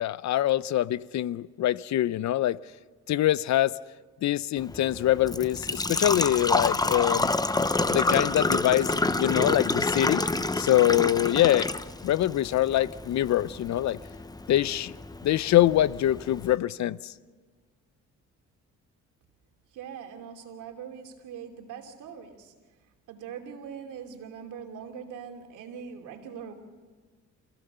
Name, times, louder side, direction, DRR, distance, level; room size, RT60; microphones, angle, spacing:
voice 1, 0.0-2.6 3.1-3.7 4.2-7.3 7.9-10.2 10.6-11.7 12.0-14.0 14.5-14.9 15.2-17.0, left 13 dB, 65° left, 0.6 m, -24 dB
Engine / Trickle dribble / Fill (with liquid), 4.6-16.6, left 2 dB, 15° left, 0.8 m, -29 dB
voice 2, 19.7-22.5 23.1-26.5, right 7 dB, 90° right, 2.9 m, -42 dB
28.0 x 16.0 x 6.8 m
cardioid pair, 90°, 30 cm